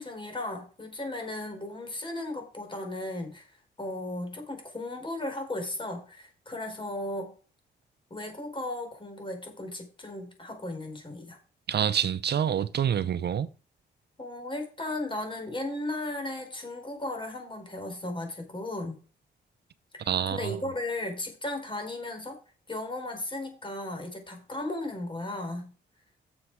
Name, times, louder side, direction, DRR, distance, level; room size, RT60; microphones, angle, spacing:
voice 1, 0.0-7.3 8.1-11.4 13.0-13.3 14.2-19.0 19.9-22.4 22.7-25.7, left 1 dB, 25° left, 4.6 m, -36 dB
voice 2, 11.7-13.5 20.1-20.6, right 8 dB, 60° right, 0.7 m, -27 dB
9.7 x 7.2 x 4.8 m
cardioid pair, 80°, 20 cm